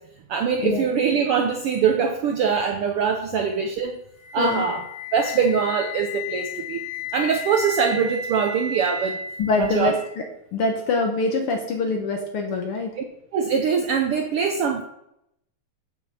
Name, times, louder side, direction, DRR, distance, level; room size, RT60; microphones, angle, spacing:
voice 1, 0.3-4.0 4.3-4.8 5.1-6.8 7.1-9.2 9.6-9.9 13.3-14.8, right 6 dB, 75° right, 4 dB, 1.3 m, -23 dB
Wind instrument woodwind instrument, 4.2-10.2, left 3 dB, 35° left, 1.6 m, -34 dB
voice 2, 9.4-10.3 10.5-12.9, left 3 dB, 65° left, 3 dB, 1.5 m, -24 dB
7.8 x 6.6 x 5.5 m, 0.79 s
omnidirectional pair, 3.4 m